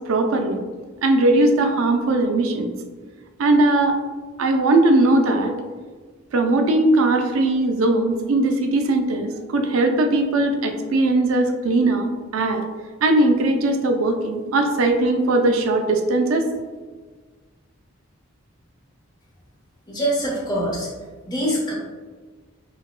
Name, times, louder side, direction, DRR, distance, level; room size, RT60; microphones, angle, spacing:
voice 1, 0.1-0.6 1.0-2.7 3.4-4.0 4.4-5.6 6.3-12.7 13.0-16.5, right 2 dB, 85° right, 5 dB, 0.4 m, -19 dB
voice 2, 19.9-20.9 21.3-21.7, right 1 dB, 20° left, -4 dB, 0.8 m, -24 dB
3.9 x 2.1 x 2.4 m, 1.4 s
head